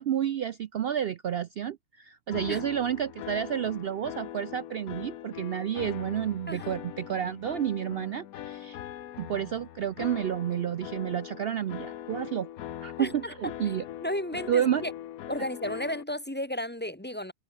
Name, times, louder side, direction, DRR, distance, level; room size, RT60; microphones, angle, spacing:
voice 1, 0.0-8.8 9.2-12.5 12.8-13.8 14.5-14.8, right 9 dB, 70° right, 0.5 m, -30 dB
sound 1, 2.3-16.0, left 12 dB, 75° left, 1.2 m, -41 dB
voice 2, 6.5-6.8 13.0-13.3 14.0-14.9 15.3-17.3, left 1 dB, 10° left, 1.0 m, -33 dB
omnidirectional pair, 1.6 m